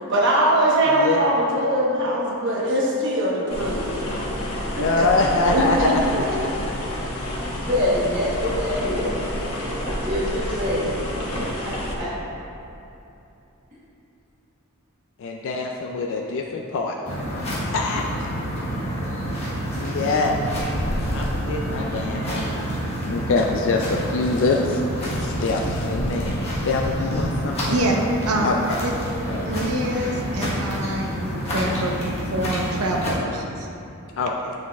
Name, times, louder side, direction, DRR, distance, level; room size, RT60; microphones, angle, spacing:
voice 1, 0.1-4.0 4.8-4.9 6.1-6.3, right 1 dB, 55° right, -4 dB, 1.1 m, -21 dB
voice 2, 0.9-1.4 4.8-6.7 15.2-17.2 17.7-18.3 19.8-20.5 20.9-22.7 23.1-24.8 25.2-27.8 28.4-28.8 34.2-34.5, left 3 dB, 55° left, 1 dB, 0.3 m, -25 dB
sound 1, 3.5-12.0, equal, 80° left, 1.1 m, -29 dB
voice 3, 5.5-5.9 27.7-28.0 28.3-28.5 28.8-28.9 29.4-31.9 32.3-33.7, right 1 dB, 80° right, 0 dB, 0.8 m, -25 dB
voice 4, 7.7-9.2 9.8-11.0 12.0-12.1, left 1 dB, 30° right, -11 dB, 1.0 m, -24 dB
sound 2, 17.1-33.1, equal, 30° left, 1.2 m, -28 dB
7.2 x 6.2 x 2.3 m, 2.8 s
head